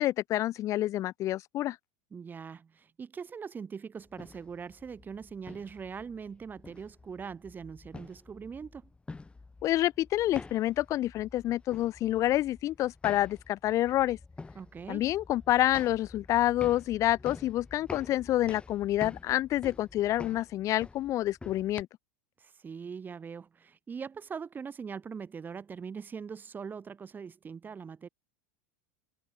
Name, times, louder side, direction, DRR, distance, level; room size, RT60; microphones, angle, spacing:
voice 1, 0.0-1.8 9.6-14.2 14.9-21.9, left 14 dB, 45° left, 0.6 m, -28 dB
voice 2, 2.1-8.9 14.5-15.1 22.4-28.1, right 6 dB, 25° right, 3.1 m, -42 dB
sound 1, 4.0-21.8, left 3 dB, 15° left, 5.1 m, -48 dB
hypercardioid pair, 95°, 8 cm